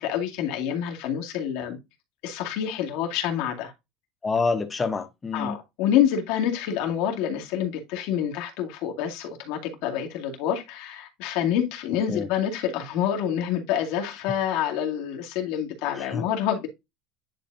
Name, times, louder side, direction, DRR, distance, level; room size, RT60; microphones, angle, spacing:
voice 1, 0.0-1.8 2.2-3.7 5.3-16.7, left 9 dB, 70° left, 2.2 m, -27 dB
voice 2, 4.2-5.6 12.1-12.3 16.0-16.2, left 4 dB, 15° left, 0.8 m, -27 dB
10.0 x 4.1 x 2.7 m
cardioid pair, 150°, 0 cm